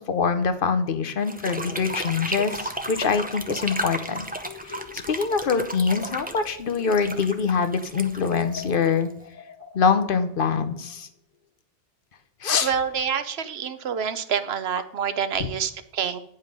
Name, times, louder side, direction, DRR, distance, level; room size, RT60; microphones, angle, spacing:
voice 1, 0.0-4.2 4.6-4.8 5.1-9.1 9.7-11.1 12.4-12.7, left 5 dB, 60° left, 10 dB, 1.0 m, -24 dB
sound 1, 1.2-9.2, right 1 dB, 10° right, 0.6 m, -33 dB
sound 2, 4.4-7.7 7.9-11.0, left 5 dB, 15° left, 1.5 m, -44 dB
voice 2, 12.6-16.2, right 7 dB, 75° right, 11 dB, 1.0 m, -27 dB
9.5 x 5.4 x 5.3 m, 0.72 s
omnidirectional pair, 1.0 m